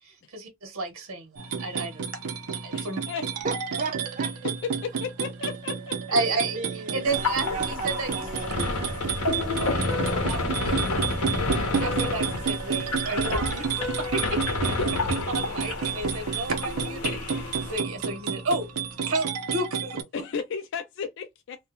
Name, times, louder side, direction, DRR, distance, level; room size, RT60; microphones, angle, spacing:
voice 1, 0.0-2.0 2.6-3.0 6.1-8.3 9.6-11.0 11.6-17.2 17.7-18.7 19.1-20.0, right 2 dB, 65° right, 0.9 m, -32 dB
sound 1, 1.4-20.0, right 6 dB, 90° right, 0.5 m, -31 dB
voice 2, 2.7-3.2 4.8-6.2 20.1-21.6, left 6 dB, 55° left, 0.3 m, -34 dB
voice 3, 3.4-4.3 6.1-8.9, right 3 dB, 35° right, 0.4 m, -36 dB
sound 2, 7.1-17.8, left 2 dB, 90° left, 0.7 m, -30 dB
sound 3, 9.8-19.2, left 3 dB, 30° left, 0.8 m, -42 dB
2.3 x 2.1 x 2.9 m
head